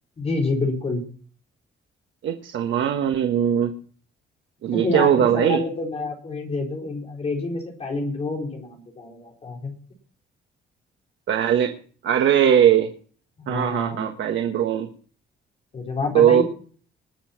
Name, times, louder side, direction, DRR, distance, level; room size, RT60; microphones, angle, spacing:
voice 1, 0.2-1.0 4.7-9.7 13.4-14.1 15.7-16.4, left 3 dB, 35° left, 0 dB, 4.2 m, -28 dB
voice 2, 2.2-3.7 4.6-5.6 11.3-11.8 12.0-12.9 13.5-14.9 16.1-16.4, right 9 dB, 80° right, 5 dB, 1.4 m, -20 dB
20.5 x 7.1 x 5.8 m, 0.43 s
cardioid pair, 160°, 19 cm